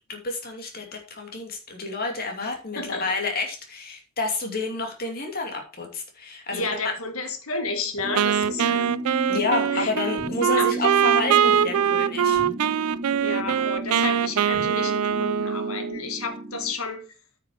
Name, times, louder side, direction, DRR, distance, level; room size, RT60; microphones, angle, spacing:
voice 1, 0.1-6.6 9.3-12.4, left 3 dB, 45° left, 3 dB, 2.7 m, -29 dB
voice 2, 2.8-3.1 6.5-8.8 9.7-9.9 10.5-10.9 13.2-17.0, left 3 dB, 75° left, 7 dB, 2.0 m, -31 dB
sound 1, 8.0-16.7, right 1 dB, 20° right, 2.3 m, -34 dB
Wind instrument woodwind instrument, 8.2-16.1, right 8 dB, 90° right, 0.4 m, -23 dB
9.2 x 6.3 x 5.0 m, 0.32 s
head